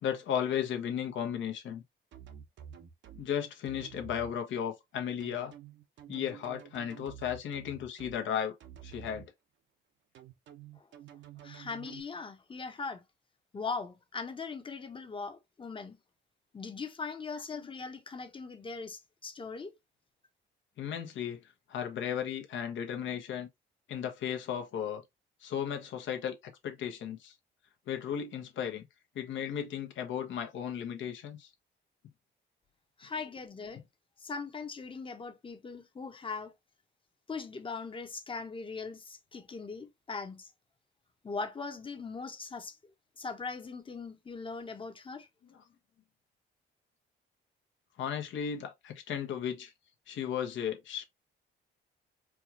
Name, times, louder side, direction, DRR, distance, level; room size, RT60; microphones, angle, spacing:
voice 1, 0.0-1.8 3.2-5.5 6.1-8.6 8.8-9.3 20.8-21.4 21.7-23.5 23.9-25.0 25.4-27.3 27.9-28.9 29.1-31.5 45.5-45.6 48.0-49.7 50.1-51.0, left 9 dB, 75° left, 1.0 m, -35 dB
sound 1, 2.1-3.2 3.6-4.3 5.2-8.2 8.6-9.3 10.1-12.0, right 9 dB, 70° right, 0.8 m, -49 dB
voice 2, 11.4-13.0 13.5-16.0 16.5-19.7 33.0-33.8 34.2-36.5 37.3-40.5 41.2-42.8 43.2-45.3, left 4 dB, 25° left, 0.9 m, -40 dB
4.6 x 2.4 x 2.8 m
cardioid pair, 90°, 20 cm